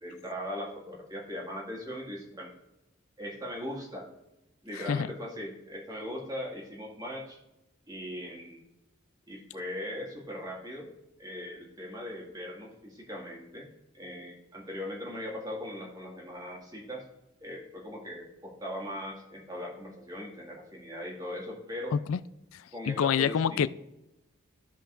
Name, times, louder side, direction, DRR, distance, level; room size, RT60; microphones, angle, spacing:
voice 1, 0.0-2.5 3.2-4.1 4.6-7.4 7.9-8.6 9.3-10.9 11.2-13.7 13.9-17.0 17.4-21.9 22.7-23.7, left 1 dB, 20° right, -3 dB, 1.9 m, -39 dB
voice 2, 22.5-23.7, left 7 dB, 85° left, 15 dB, 0.4 m, -27 dB
14.5 x 5.3 x 2.5 m, 0.94 s
head